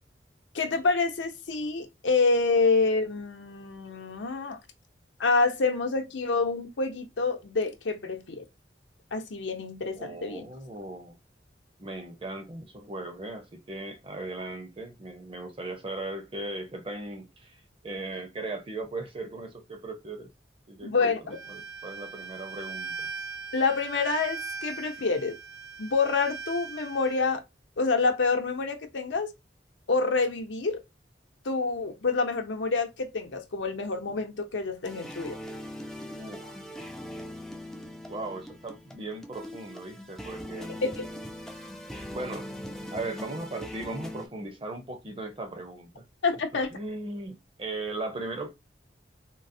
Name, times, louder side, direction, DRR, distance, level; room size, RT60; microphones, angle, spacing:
voice 1, 0.5-4.6 5.2-8.5 9.1-10.4 20.8-21.4 23.5-25.3 25.8-27.4 27.8-29.3 29.9-30.8 31.4-35.4 40.8-41.1 46.2-46.8, left 4 dB, 85° left, 0.7 m, -27 dB
voice 2, 10.0-11.2 11.8-20.3 20.7-23.1 36.1-36.6 38.1-40.8 42.1-42.5 42.9-46.0 46.7-48.5, right 2 dB, 30° right, 0.6 m, -38 dB
Bowed string instrument, 21.3-27.3, right 4 dB, 75° right, 0.7 m, -40 dB
sound 1, 34.8-44.3, left 1 dB, 5° left, 0.3 m, -41 dB
3.8 x 2.0 x 2.6 m
head